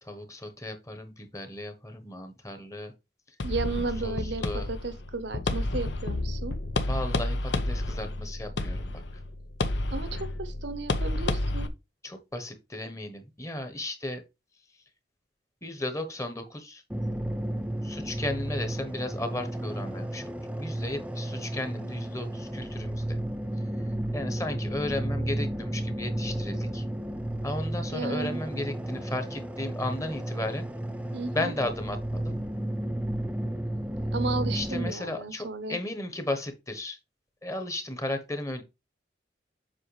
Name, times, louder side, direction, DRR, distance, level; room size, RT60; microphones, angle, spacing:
voice 1, 0.0-2.9 4.0-4.7 6.9-9.2 12.0-14.2 15.6-16.8 17.8-23.2 23.6-23.7 24.1-26.8 27.4-30.7 31.3-32.4 34.5-37.0 37.4-38.6, left 1 dB, 15° left, 1.1 m, -35 dB
sound 1, 3.4-11.7, left 2 dB, 80° left, 0.8 m, -30 dB
voice 2, 3.4-6.6 9.9-11.7 27.9-28.6 31.1-31.5 34.1-35.8, right 3 dB, 75° right, 1.0 m, -34 dB
sound 2, 16.9-34.9, right 1 dB, 10° right, 0.5 m, -33 dB
7.7 x 5.3 x 3.3 m
head